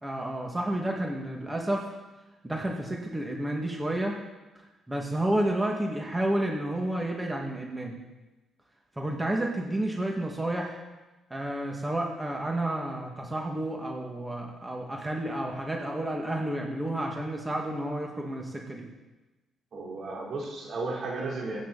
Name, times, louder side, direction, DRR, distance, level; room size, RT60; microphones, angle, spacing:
voice 1, 0.0-1.9 2.4-4.2 4.6-8.0 9.0-10.8 11.3-18.9, right 1 dB, 15° right, 0 dB, 2.1 m, -31 dB
voice 2, 19.7-21.6, right 3 dB, 60° right, -1 dB, 3.7 m, -34 dB
22.0 x 9.3 x 4.2 m, 1.1 s
cardioid pair, 90°, 0 cm